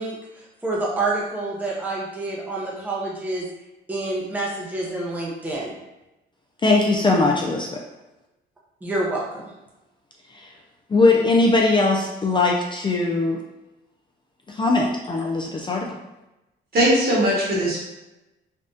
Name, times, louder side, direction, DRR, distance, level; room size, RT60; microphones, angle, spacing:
voice 1, 0.0-3.5 3.9-5.7 8.8-9.4, right 2 dB, 10° right, -5 dB, 0.7 m, -28 dB
voice 2, 6.6-7.8 10.3-10.5 10.9-13.4 14.5-15.9, left 3 dB, 25° left, -1 dB, 0.4 m, -20 dB
voice 3, 16.7-17.8, equal, 50° right, -6 dB, 1.4 m, -19 dB
3.5 x 2.3 x 2.6 m, 0.98 s
cardioid pair, 90°, 20 cm